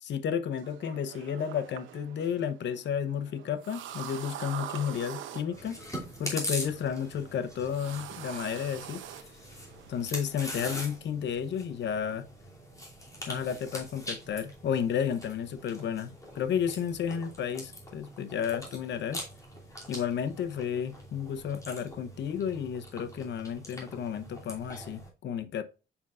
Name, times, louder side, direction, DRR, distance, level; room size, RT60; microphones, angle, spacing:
voice 1, 0.0-5.8 6.2-9.3 9.9-12.3 13.3-19.2 19.9-25.6, left 8 dB, 65° left, 0.8 m, -32 dB
sound 1, 0.5-10.7, right 10 dB, 80° right, 0.8 m, -45 dB
Chewing mastication, 5.5-25.1, left 1 dB, 15° left, 2.8 m, -43 dB
7.2 x 5.4 x 2.4 m
cardioid pair, 90°, 20 cm